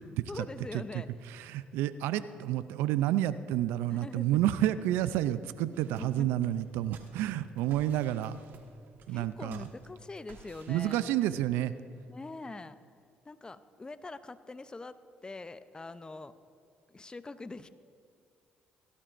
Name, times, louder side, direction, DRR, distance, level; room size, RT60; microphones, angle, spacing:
voice 1, 0.3-1.1 3.9-4.4 5.6-6.3 9.1-11.1 12.1-12.8 13.2-15.0 15.2-16.3 16.9-17.7, left 3 dB, 25° left, 13 dB, 0.6 m, -43 dB
voice 2, 1.3-8.4 9.1-9.6 10.7-11.7, right 13 dB, 85° right, 14 dB, 0.4 m, -30 dB
sound 1, 5.7-11.0, right 5 dB, 65° right, 1.3 m, -56 dB
17.0 x 12.0 x 2.5 m, 2.3 s
supercardioid pair, 65°, 4 cm